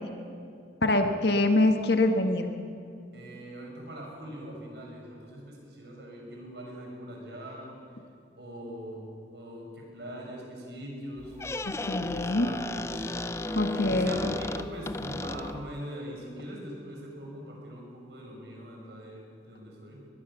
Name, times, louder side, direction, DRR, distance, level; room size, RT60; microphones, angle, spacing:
voice 1, 0.8-2.5 11.9-12.5 13.5-14.1, left 2 dB, 70° left, 5 dB, 1.5 m, -24 dB
voice 2, 3.1-7.8 8.4-11.4 12.1-13.0 13.8-20.0, equal, 75° right, 0 dB, 6.5 m, -41 dB
Squeak, 11.2-15.8, left 2 dB, 15° left, 0.4 m, -35 dB
21.5 x 21.0 x 7.1 m, 2.4 s
head